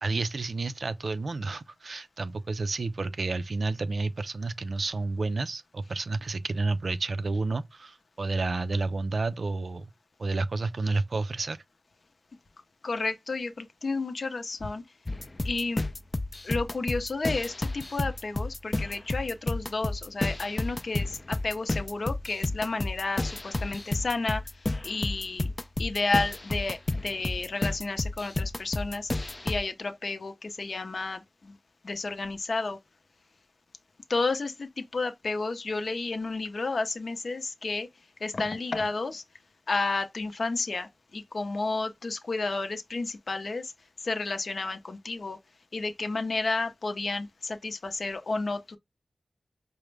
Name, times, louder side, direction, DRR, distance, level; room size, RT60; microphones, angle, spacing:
voice 1, 0.0-9.9 10.2-11.6, right 3 dB, 65° right, 0.3 m, -30 dB
voice 2, 12.8-14.8 15.4-15.8 16.4-25.5 25.8-31.6 31.8-32.8 34.1-37.9 38.2-39.2 39.7-43.7 44.0-45.4 45.7-48.8, left 3 dB, 65° left, 0.6 m, -31 dB
sound 1, 15.1-29.6, left 2 dB, 30° left, 0.3 m, -32 dB
4.8 x 2.1 x 3.2 m
wide cardioid pair, 80°, 0 cm